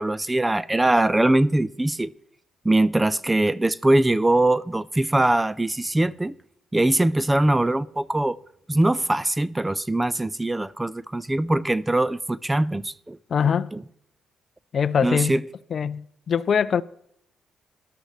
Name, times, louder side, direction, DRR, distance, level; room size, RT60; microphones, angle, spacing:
voice 1, 0.0-2.1 2.6-6.3 6.7-8.4 8.7-13.2 13.4-13.8 15.0-15.4, right 1 dB, 15° right, 0.3 m, -22 dB
voice 2, 13.3-13.7 14.7-15.4 15.7-16.8, left 7 dB, 50° left, 0.4 m, -23 dB
13.5 x 11.5 x 3.2 m
cardioid pair, 90°, 0 cm